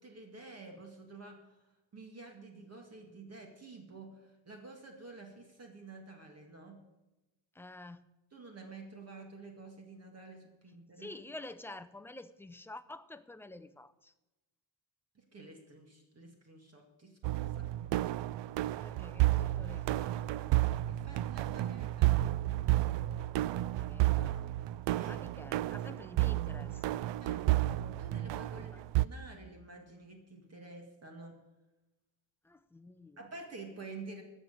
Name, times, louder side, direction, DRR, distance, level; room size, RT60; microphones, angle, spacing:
voice 1, 0.0-1.7 1.9-6.8 8.3-11.1 15.1-17.7 20.9-22.3 24.9-25.2 27.2-31.4 33.2-34.2, right 3 dB, 35° right, 3 dB, 2.0 m, -50 dB
voice 2, 7.5-8.1 11.0-14.1 18.8-20.3 23.5-24.5 25.0-27.1 28.5-28.8 32.4-33.2, left 2 dB, 5° left, 10 dB, 0.4 m, -49 dB
sound 1, 17.2-29.1, right 16 dB, 70° right, 0.5 m, -31 dB
15.0 x 6.4 x 8.8 m, 1.0 s
cardioid pair, 155°, 45 cm